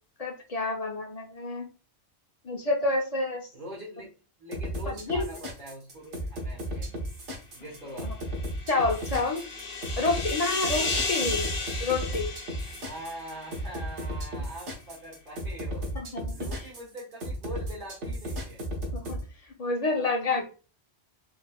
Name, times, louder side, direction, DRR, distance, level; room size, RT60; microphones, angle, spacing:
voice 1, 0.2-1.7 2.4-3.5 4.9-5.2 8.0-8.1 8.7-9.4 10.0-11.5 11.8-12.3 15.9-16.7 18.9-19.2 19.6-20.5, left 3 dB, 40° left, 2 dB, 0.7 m, -29 dB
voice 2, 3.5-4.1 4.4-6.9 7.5-8.1 12.6-15.9 16.3-18.7, equal, 50° right, -7 dB, 1.4 m, -43 dB
sound 1, 4.5-19.2, equal, 85° right, 1.5 m, -34 dB
sound 2, 8.1-13.7, left 3 dB, 65° left, 1.3 m, -34 dB
4.4 x 3.3 x 2.3 m, 0.35 s
omnidirectional pair, 1.2 m